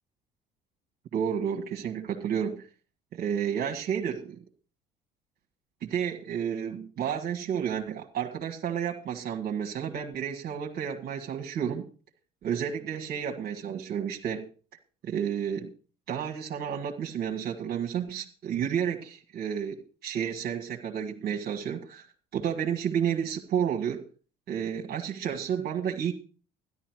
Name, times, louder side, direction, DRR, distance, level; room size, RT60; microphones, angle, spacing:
voice 1, 1.1-2.6 3.1-4.4 5.8-11.9 12.4-14.5 15.0-15.7 16.1-22.0 22.3-24.0 24.5-26.1, right 8 dB, 50° right, 1 dB, 1.5 m, -31 dB
12.5 x 11.0 x 4.6 m, 0.38 s
hypercardioid pair, 65°, 20 cm